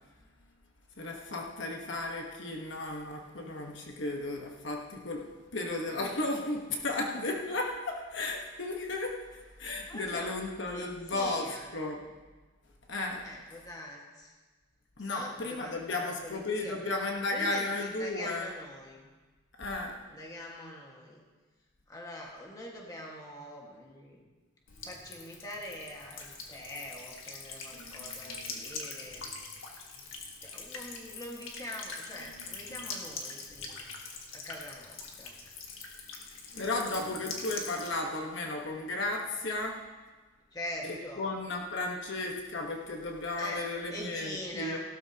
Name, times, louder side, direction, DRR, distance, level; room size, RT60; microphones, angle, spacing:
voice 1, 1.0-5.3 5.5-11.5 11.7-12.0 12.9-13.2 15.0-18.5 19.6-20.0 36.6-39.8 40.8-44.8, left 2 dB, 60° left, 1 dB, 1.2 m, -34 dB
voice 2, 9.7-10.4 10.6-11.7 13.2-14.3 15.0-16.9 17.3-19.1 20.1-21.2 21.9-24.3 24.8-29.3 30.4-33.9 34.3-35.4 40.5-41.3 43.4-43.6 43.9-44.8, left 1 dB, 15° left, -2 dB, 1.6 m, -43 dB
Buzz / Water tap faucet / Trickle dribble, 24.7-37.9, left 4 dB, 80° left, 1.6 m, -43 dB
16.5 x 12.5 x 2.9 m, 1.3 s
head